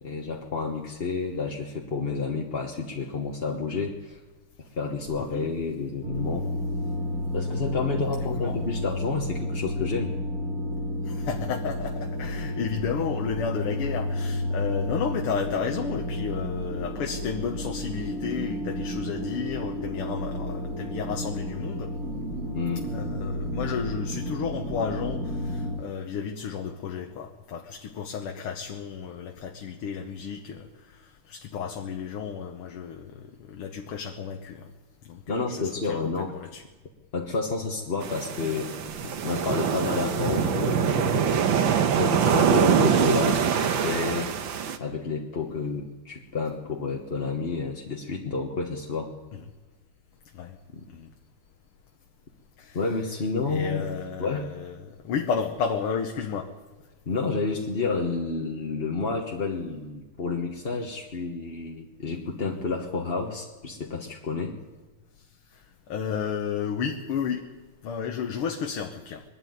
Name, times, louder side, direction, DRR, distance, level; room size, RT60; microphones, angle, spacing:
voice 1, 0.0-4.2 4.6-6.5 7.3-10.1 22.5-22.9 35.3-36.4 37.1-38.7 39.2-41.6 42.0-44.3 44.8-49.1 50.7-50.9 52.7-53.9 54.2-54.5 57.1-64.6, left 4 dB, 35° left, 0 dB, 1.2 m, -30 dB
sound 1, 6.0-25.8, left 1 dB, 40° right, 2.7 m, -31 dB
voice 2, 11.1-21.9 22.9-30.7 31.3-34.7 35.1-36.6 39.0-39.2 50.3-50.6 50.9-51.1 52.6-52.8 53.5-56.5 65.9-67.4 67.8-69.2, left 7 dB, 85° left, 3 dB, 2.0 m, -32 dB
sound 2, 38.0-44.8, right 7 dB, 65° right, 1.7 m, -24 dB
21.5 x 13.0 x 9.4 m, 1.2 s
omnidirectional pair, 2.4 m